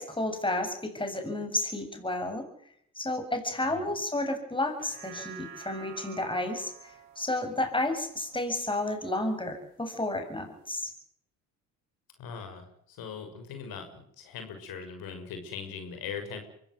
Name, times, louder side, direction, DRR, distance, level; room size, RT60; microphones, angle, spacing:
voice 1, 0.0-2.4 3.0-10.9, left 2 dB, 15° left, 6 dB, 7.5 m, -31 dB
sound 1, 4.7-9.3 9.7-9.8, right 11 dB, 90° right, 4.3 m, -50 dB
voice 2, 12.2-16.4, left 6 dB, 70° left, 6 dB, 6.5 m, -40 dB
24.0 x 16.0 x 9.7 m, 0.70 s
supercardioid pair, 75°, 37 cm